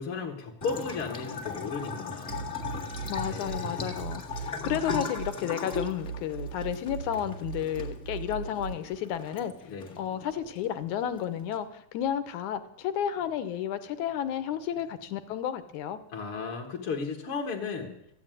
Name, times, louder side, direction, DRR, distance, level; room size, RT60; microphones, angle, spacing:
voice 1, 0.0-2.6 3.3-4.1 9.7-10.0 16.1-18.0, left 5 dB, 50° left, 0 dB, 2.0 m, -35 dB
Bathtub (filling or washing) / Trickle dribble, 0.6-11.6, left 5 dB, 30° left, 1.7 m, -39 dB
sound 1, 2.3-5.3 5.7-8.7, right 6 dB, 75° right, 1.1 m, -38 dB
voice 2, 3.1-9.5 10.0-16.0, left 10 dB, 75° left, 11 dB, 2.3 m, -32 dB
14.5 x 10.0 x 9.0 m, 0.78 s
omnidirectional pair, 3.7 m